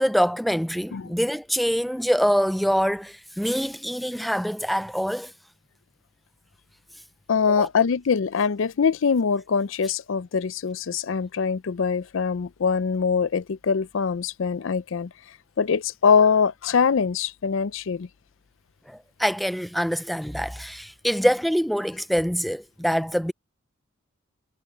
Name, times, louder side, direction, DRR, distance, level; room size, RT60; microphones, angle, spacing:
voice 1, 0.0-5.3 7.5-7.7 18.9-23.3, equal, ahead, 0.3 m, -25 dB
voice 2, 7.3-15.1 15.6-18.1, left 6 dB, 65° left, 0.5 m, -23 dB
head